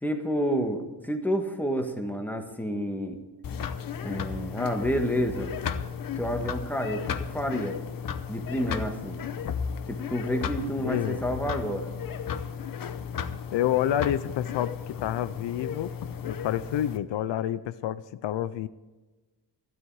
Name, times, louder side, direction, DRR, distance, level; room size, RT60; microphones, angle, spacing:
voice 1, 0.0-3.2 4.0-5.5 6.1-7.8 8.3-9.2 9.9-11.9, equal, 5° left, 4 dB, 1.4 m, -29 dB
sound 1, 3.4-17.0, left 7 dB, 50° left, 0.8 m, -34 dB
voice 2, 10.8-11.2 13.5-15.9 16.2-18.7, left 11 dB, 80° left, 15 dB, 0.6 m, -28 dB
13.0 x 12.5 x 4.8 m, 1.2 s
wide cardioid pair, 155°, 43 cm